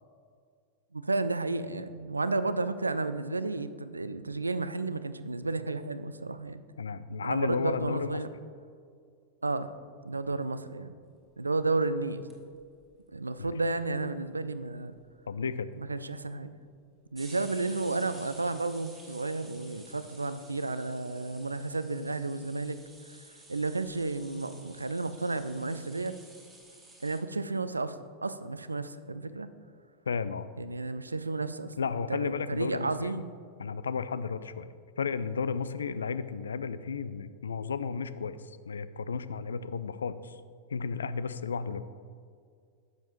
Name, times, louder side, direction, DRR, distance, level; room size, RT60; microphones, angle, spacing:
voice 1, 0.9-6.6 7.2-8.3 9.4-9.7 10.0-10.9 11.4-12.2 13.1-14.9 15.8-16.5 17.1-22.8 23.1-26.2 27.0-28.0 28.2-29.5 30.6-33.3, right 3 dB, 80° right, 13 dB, 0.3 m, -32 dB
voice 2, 6.8-8.2 13.4-13.5 15.3-15.7 30.1-30.5 31.8-33.2 33.6-40.4 40.7-41.8, left 5 dB, 70° left, 14 dB, 0.3 m, -33 dB
sound 1, 12.0-12.8 13.1-13.2 13.4-13.5 13.7-14.3 14.6-14.7 15.0-15.3 16.1-16.2 17.1-27.2, right 2 dB, 10° right, 1.6 m, -53 dB
10.5 x 7.2 x 3.0 m, 2.2 s
figure-of-eight pair, 90°, 0 cm